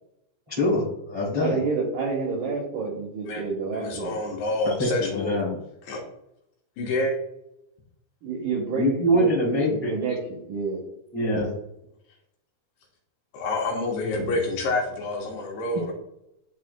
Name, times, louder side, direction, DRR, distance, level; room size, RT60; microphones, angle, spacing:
voice 1, 0.5-1.6 4.8-5.6 8.7-9.9 11.1-11.5, equal, 40° right, -7 dB, 0.5 m, -24 dB
voice 2, 1.4-4.2 8.2-10.8, right 4 dB, 75° right, -2 dB, 2.1 m, -29 dB
voice 3, 3.7-5.4 5.9-6.0 6.8-7.1 13.3-15.9, left 2 dB, 70° left, -1 dB, 2.8 m, -27 dB
11.0 x 4.5 x 2.2 m, 0.81 s
omnidirectional pair, 5.3 m